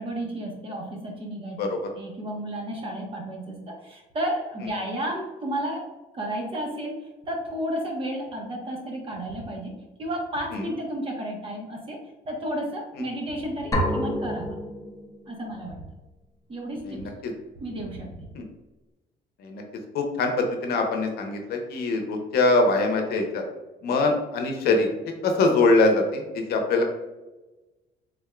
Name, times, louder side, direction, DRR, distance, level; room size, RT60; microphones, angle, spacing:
voice 1, 0.0-1.6 2.0-5.8 6.1-12.0 12.3-14.6 15.3-15.8 16.5-17.0 17.6-18.1, right 1 dB, 30° right, 0 dB, 1.0 m, -32 dB
sound 1, 13.7-15.5, left 1 dB, 20° left, 0.8 m, -28 dB
voice 2, 16.8-17.3 18.3-18.4 19.4-19.6 19.9-23.4 23.8-24.9 25.2-26.8, left 3 dB, 70° left, 3 dB, 0.7 m, -23 dB
3.7 x 3.5 x 2.2 m, 1.1 s
cardioid pair, 110°, 17 cm